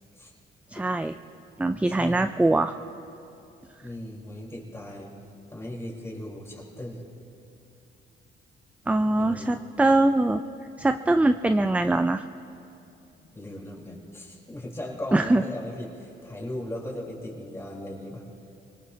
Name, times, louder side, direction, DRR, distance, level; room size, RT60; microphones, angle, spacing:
voice 1, 0.8-1.1 1.6-2.7 8.9-10.4 10.8-12.2 15.1-15.4, right 2 dB, 5° right, 9 dB, 0.4 m, -22 dB
voice 2, 1.9-2.2 3.8-5.1 5.5-7.0 9.2-9.5 13.2-18.2, left 1 dB, 15° left, -3 dB, 4.1 m, -37 dB
25.5 x 18.0 x 2.8 m, 2.8 s
cardioid pair, 90°, 20 cm